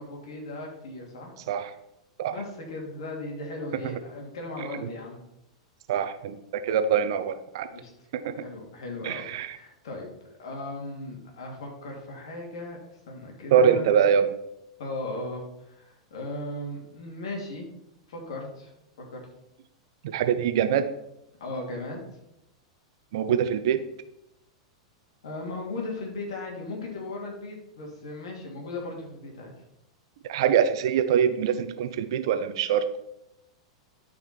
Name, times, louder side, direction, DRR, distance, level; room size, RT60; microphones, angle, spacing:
voice 1, 0.0-1.3 2.3-5.2 7.7-7.9 8.3-10.1 10.4-12.8 13.1-13.9 14.8-17.7 18.1-18.7 19.0-19.2 21.4-22.0 25.2-29.5, left 2 dB, 65° left, 0 dB, 3.0 m, -37 dB
voice 2, 5.9-7.7 8.1-8.3 9.0-9.6 13.5-14.3 20.0-20.9 23.1-23.8 30.3-32.8, right 8 dB, 55° right, 11 dB, 0.8 m, -24 dB
12.0 x 5.2 x 4.6 m, 0.82 s
figure-of-eight pair, 95°, 3 cm